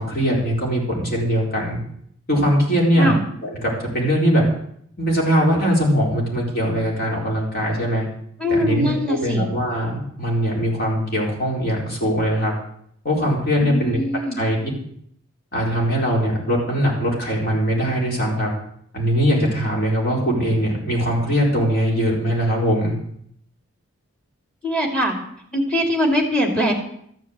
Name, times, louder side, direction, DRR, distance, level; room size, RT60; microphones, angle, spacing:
voice 1, 0.0-1.8 2.3-3.1 3.6-4.4 5.0-8.1 8.5-12.5 13.0-14.0 14.4-14.6 15.5-18.5 18.9-22.9, equal, 45° left, -2 dB, 4.4 m, -21 dB
voice 2, 8.4-9.5 13.6-14.4 24.6-25.2 25.5-26.7, equal, 5° left, 2 dB, 2.4 m, -21 dB
13.5 x 7.5 x 8.0 m, 0.68 s
head